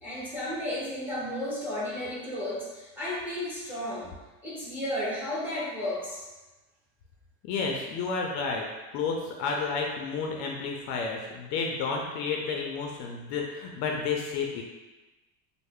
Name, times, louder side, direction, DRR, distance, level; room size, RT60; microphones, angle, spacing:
voice 1, 0.0-4.1 4.4-6.3, left 1 dB, 5° right, -7 dB, 0.6 m, -33 dB
voice 2, 7.4-8.6 8.9-14.6, left 5 dB, 50° left, 0 dB, 0.4 m, -31 dB
3.2 x 2.0 x 3.5 m, 1.1 s
cardioid pair, 165°, 36 cm